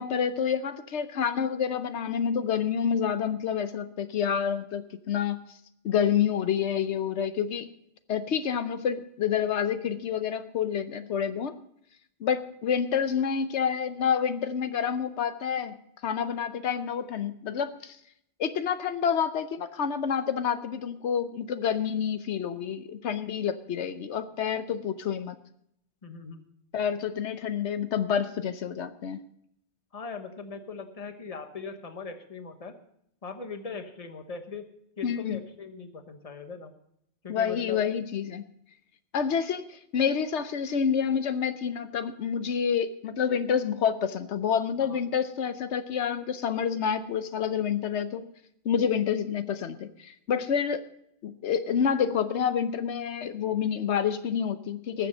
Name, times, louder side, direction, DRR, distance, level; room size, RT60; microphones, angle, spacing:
voice 1, 0.0-5.4 5.8-7.7 8.1-11.6 12.2-15.7 16.0-18.0 18.4-25.4 26.7-29.2 35.0-35.4 37.3-38.4 39.1-48.3 48.6-50.8 51.2-55.1, left 7 dB, 85° left, 10 dB, 1.1 m, -28 dB
voice 2, 26.0-26.4 29.9-32.8 33.2-34.7 35.0-36.7 37.2-37.8 44.8-45.0, left 5 dB, 35° left, 7 dB, 1.2 m, -40 dB
20.0 x 7.5 x 5.3 m, 0.72 s
omnidirectional pair, 1.1 m